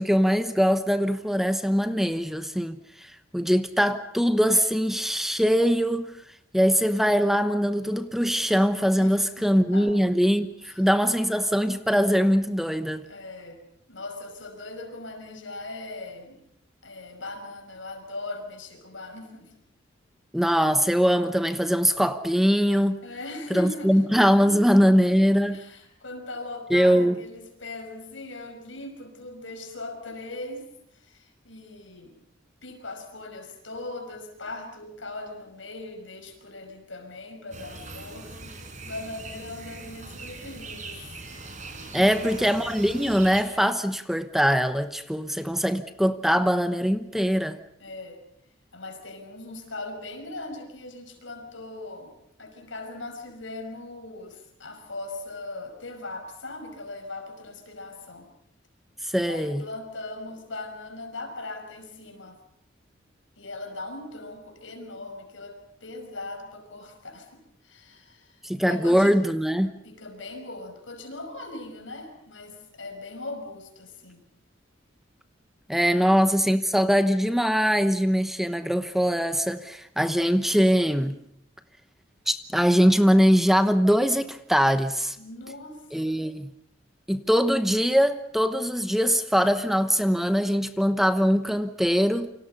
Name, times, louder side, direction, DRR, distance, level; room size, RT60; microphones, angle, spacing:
voice 1, 0.0-6.1 6.5-13.0 20.3-23.0 23.5-25.6 26.7-27.2 41.9-47.6 59.0-59.6 68.4-69.8 75.7-81.2 82.3-85.2 85.9-86.5 87.1-92.3, equal, ahead, 1.0 m, -22 dB
voice 2, 9.0-10.1 10.6-10.9 13.1-13.6 13.9-16.4 16.8-19.5 23.0-24.0 24.5-25.2 25.5-32.1 32.6-41.2 42.0-42.4 47.8-48.2 48.7-58.3 59.2-62.4 63.4-69.2 69.8-74.2 75.9-76.3 85.2-86.2, left 2 dB, 85° left, 5.6 m, -40 dB
sound 1, 37.5-43.4, right 3 dB, 40° right, 4.9 m, -41 dB
29.0 x 25.5 x 5.5 m
head